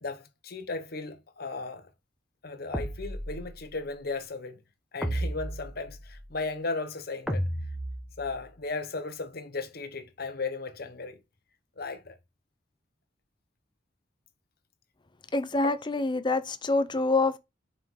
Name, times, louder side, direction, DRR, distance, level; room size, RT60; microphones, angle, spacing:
voice 1, 0.0-1.9 2.4-4.6 4.9-7.4 8.2-11.2 11.8-12.2 15.6-15.8, left 3 dB, 55° left, 1.0 m, -36 dB
sound 1, 2.7-3.8 5.0-6.3 7.3-8.5, right 1 dB, ahead, 1.0 m, -34 dB
voice 2, 15.3-17.4, left 3 dB, 25° left, 0.6 m, -26 dB
5.9 x 4.7 x 3.8 m
head